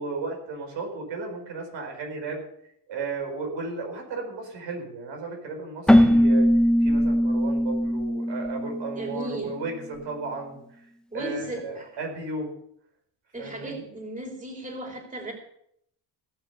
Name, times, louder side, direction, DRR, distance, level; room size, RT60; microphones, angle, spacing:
voice 1, 0.0-2.4 2.9-6.5 6.8-10.9 11.1-12.5 13.4-13.8, right 3 dB, 85° right, 2 dB, 4.8 m, -34 dB
Keyboard (musical), 5.9-9.5, equal, ahead, 0.8 m, -21 dB
voice 2, 9.0-9.5 11.1-11.9 13.3-15.3, right 1 dB, 20° right, 1 dB, 3.2 m, -35 dB
17.0 x 7.0 x 6.8 m, 0.72 s
cardioid pair, 120°, 43 cm